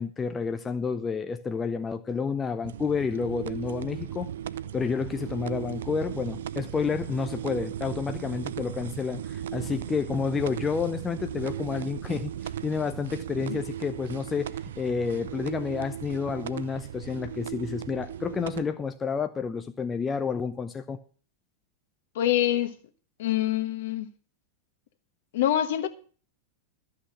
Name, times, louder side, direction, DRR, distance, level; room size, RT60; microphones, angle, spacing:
voice 1, 0.0-4.3 4.7-21.0, left 5 dB, 15° left, 0.7 m, -30 dB
sound 1, 2.6-18.6, right 10 dB, 60° right, 0.5 m, -37 dB
voice 2, 22.1-22.7 23.2-24.1 25.3-25.9, left 12 dB, 55° left, 1.3 m, -25 dB
13.0 x 5.9 x 8.6 m
figure-of-eight pair, 90°, 0 cm